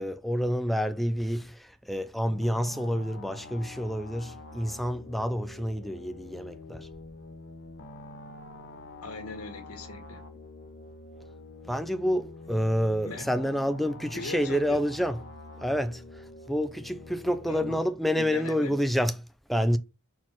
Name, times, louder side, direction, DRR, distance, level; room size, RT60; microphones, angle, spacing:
voice 1, 0.0-6.9 11.6-15.2 15.6-19.2 19.5-19.8, equal, ahead, 0.5 m, -28 dB
sound 1, 2.2-17.8, left 2 dB, 55° left, 1.2 m, -46 dB
voice 2, 9.0-10.2 13.0-13.3 14.1-14.8 17.5-17.8 18.1-18.8, left 3 dB, 75° left, 1.9 m, -39 dB
5.8 x 4.8 x 5.8 m
head